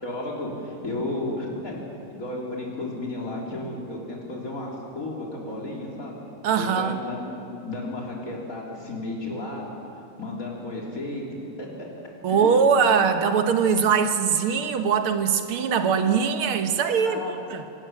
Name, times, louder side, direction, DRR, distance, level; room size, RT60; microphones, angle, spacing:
voice 1, 0.0-1.8 2.1-6.2 6.6-7.3 7.6-9.7 10.2-11.2 11.6-11.9 12.3-12.6 17.0-17.3, left 2 dB, 40° left, -3 dB, 4.0 m, -33 dB
voice 2, 6.4-7.0 12.2-17.2 17.5-17.6, right 6 dB, 85° right, 7 dB, 2.1 m, -21 dB
25.0 x 13.5 x 8.9 m, 2.7 s
omnidirectional pair, 2.3 m